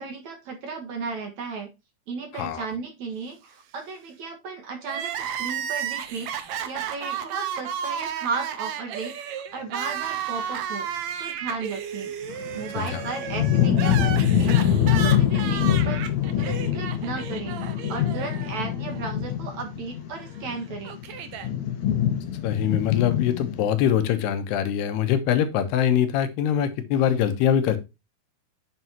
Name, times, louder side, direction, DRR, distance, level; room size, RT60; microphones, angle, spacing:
voice 1, 0.0-1.7 2.1-10.9 11.2-12.1 12.5-16.0 16.3-20.9, right 4 dB, 55° right, 2.4 m, -35 dB
Crying sobbing, 4.8-19.0 19.3-19.4 20.3-21.5, right 9 dB, 90° right, 1.5 m, -33 dB
sound 1, 12.3-23.6, left 9 dB, 60° left, 2.0 m, -24 dB
voice 2, 22.4-27.8, left 9 dB, 85° left, 3.0 m, -23 dB
9.3 x 6.8 x 2.8 m
omnidirectional pair, 4.7 m